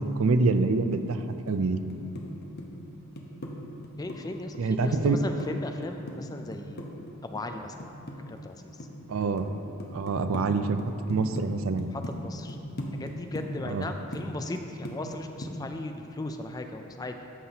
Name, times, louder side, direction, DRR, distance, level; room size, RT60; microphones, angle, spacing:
voice 1, 0.0-1.2 1.5-1.8 4.6-5.2 9.1-9.5 9.9-10.8 11.1-11.9 13.7-13.8, right 3 dB, 75° right, 9 dB, 0.4 m, -25 dB
sound 1, 0.9-1.6 1.9-3.5 3.8-5.5 5.8-8.5 8.8-9.5 9.8-10.5 10.8-11.5 11.8-12.1 12.5-15.2 15.4-15.6, left 1 dB, 50° left, 0.8 m, -39 dB
voice 2, 4.0-6.8 7.2-7.9 8.3-8.9 11.8-12.6 13.0-17.3, left 2 dB, 20° left, 5 dB, 0.4 m, -37 dB
13.5 x 5.6 x 2.9 m, 2.8 s
head